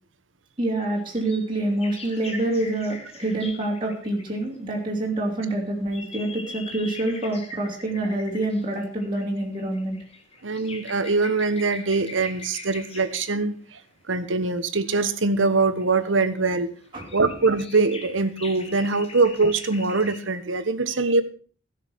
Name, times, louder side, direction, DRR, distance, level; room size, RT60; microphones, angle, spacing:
voice 1, 0.6-10.0 16.9-17.1, right 1 dB, 25° right, -3 dB, 3.2 m, -26 dB
sound 1, 0.9-4.6 5.2-13.4 14.6-14.7 15.3-16.3 16.6-20.4, left 3 dB, 30° left, 2.0 m, -43 dB
voice 2, 10.4-13.8 14.1-16.7 17.1-21.2, right 3 dB, 85° right, 12 dB, 1.3 m, -23 dB
16.0 x 6.7 x 6.4 m, 0.42 s
head